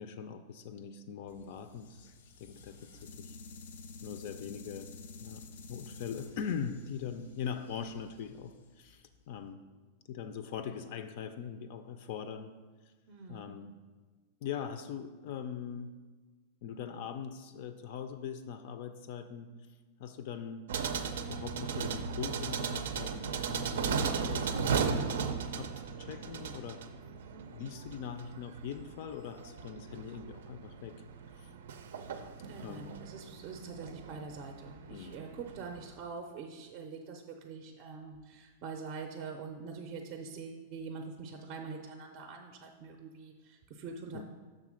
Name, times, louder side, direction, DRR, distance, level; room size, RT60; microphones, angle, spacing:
voice 1, 0.0-2.1 2.4-3.4 4.0-4.9 5.2-5.4 5.7-9.6 10.1-12.5 13.3-13.7 14.4-15.9 16.6-19.5 20.0-20.7 21.2-25.3 25.6-26.9 27.5-31.0 31.4-31.5 32.6-32.9 34.9-35.2 44.1-44.2, left 7 dB, 45° left, 9 dB, 0.4 m, -41 dB
sound 1, 1.3-9.4, left 4 dB, 85° left, 0.7 m, -51 dB
voice 2, 13.1-13.5 32.5-44.2, right 4 dB, 35° right, 4 dB, 0.5 m, -44 dB
sound 2, 20.7-35.9, right 6 dB, 85° right, 0.5 m, -37 dB
6.5 x 3.6 x 6.2 m, 1.3 s
supercardioid pair, 170°, 0 cm